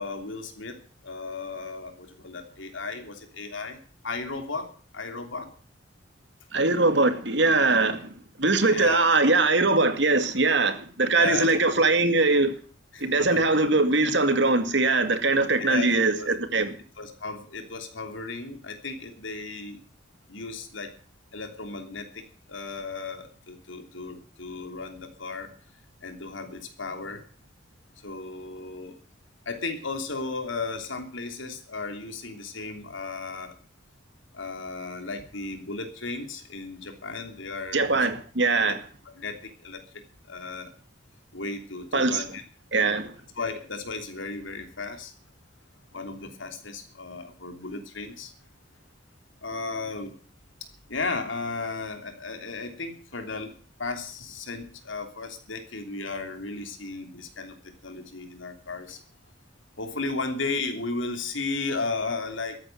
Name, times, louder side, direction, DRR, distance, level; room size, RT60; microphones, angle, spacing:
voice 1, 0.0-5.5 8.7-9.3 11.1-11.7 12.9-13.0 13.3-13.5 15.6-15.9 16.2-16.3 17.0-19.8 20.3-20.9 21.3-25.5 26.0-27.2 28.0-28.9 29.4-33.5 34.3-38.0 38.5-38.6 39.0-40.0 40.3-40.7 41.3-42.4 43.4-45.1 45.9-48.3 49.4-50.2 50.9-53.5 53.8-59.0 59.8-62.6, left 3 dB, 80° left, 3.0 m, -35 dB
voice 2, 6.5-8.1 8.4-12.5 13.0-16.7 37.7-38.8 41.9-42.2 42.7-43.1, right 3 dB, 65° right, 2.2 m, -22 dB
14.0 x 9.6 x 7.9 m
head